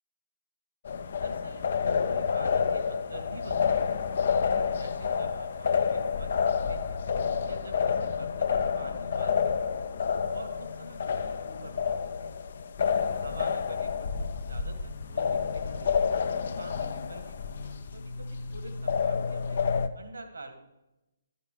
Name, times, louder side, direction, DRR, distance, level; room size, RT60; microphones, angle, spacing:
sound 1, 0.8-19.9, left 6 dB, 60° left, 0.7 m, -29 dB
voice 1, 1.2-4.1 4.8-7.0 7.4-9.6 10.3-11.8 12.2-12.4 13.2-16.2 16.6-19.6 19.9-20.6, right 2 dB, 75° right, 6 dB, 2.1 m, -47 dB
12.0 x 6.9 x 6.7 m, 0.96 s
figure-of-eight pair, 140°, 0 cm